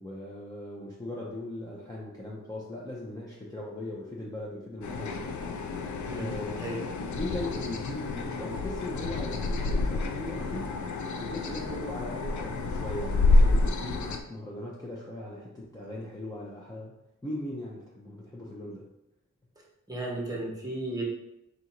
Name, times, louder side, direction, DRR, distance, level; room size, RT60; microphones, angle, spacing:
voice 1, 0.0-5.2 6.1-6.6 7.1-10.9 11.2-16.9 17.2-18.9, left 1 dB, 10° left, -5 dB, 0.6 m, -39 dB
sound 1, 4.8-14.2, left 3 dB, 65° left, 0.5 m, -28 dB
voice 2, 6.1-6.9 19.9-21.0, right 1 dB, 10° right, -2 dB, 0.9 m, -35 dB
3.9 x 2.5 x 4.3 m, 0.87 s
wide cardioid pair, 135°, 31 cm